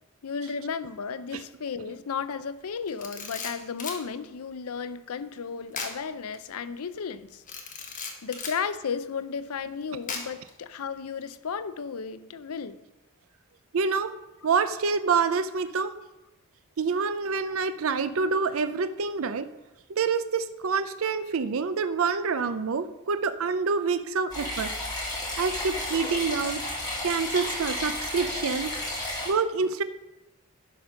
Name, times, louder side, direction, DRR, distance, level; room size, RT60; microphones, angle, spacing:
voice 1, 0.2-7.4 8.2-12.8 17.5-17.6, left 6 dB, 85° left, 14 dB, 0.5 m, -34 dB
Camera, 2.9-4.0 5.7-6.0 6.3-6.5 7.5-8.6 10.1-10.5, left 5 dB, 40° left, 1.4 m, -36 dB
voice 2, 13.7-14.1 14.4-15.9 16.8-19.5 19.9-24.7 25.4-26.6 27.0-28.7 29.3-29.8, right 5 dB, 65° right, 11 dB, 0.5 m, -27 dB
sound 1, 24.3-29.3, left 1 dB, 20° left, 3.6 m, -32 dB
11.0 x 5.1 x 5.8 m, 0.99 s
head